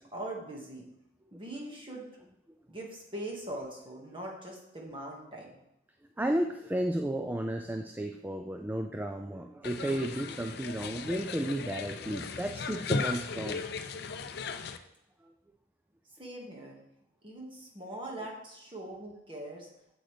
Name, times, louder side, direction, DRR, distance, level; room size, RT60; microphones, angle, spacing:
voice 1, 0.1-0.9 1.3-2.1 2.7-5.6 16.2-16.8 17.2-19.7, right 1 dB, 25° right, -1 dB, 1.8 m, -41 dB
voice 2, 6.2-13.6, right 1 dB, 10° right, 5 dB, 0.3 m, -33 dB
sound 1, 9.6-14.8, left 4 dB, 55° left, 0.5 m, -36 dB
8.0 x 7.7 x 3.4 m, 0.81 s
head